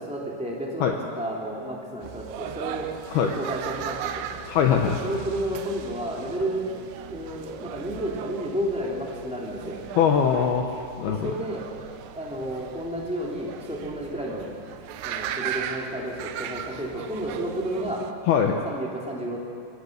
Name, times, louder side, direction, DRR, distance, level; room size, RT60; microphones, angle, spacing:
voice 1, 0.0-2.9 3.2-4.3 4.8-6.6 7.1-9.8 11.0-11.6 12.1-14.4 15.0-18.0 18.6-19.4, right 1 dB, 5° right, -3 dB, 0.9 m, -31 dB
sound 1, 2.0-18.1, right 9 dB, 75° right, 3.0 m, -37 dB
voice 2, 4.5-5.0 10.0-10.7 11.0-11.3 18.3-18.6, left 8 dB, 75° left, 3 dB, 2.4 m, -21 dB
23.5 x 17.5 x 6.6 m, 2.5 s
omnidirectional pair, 5.6 m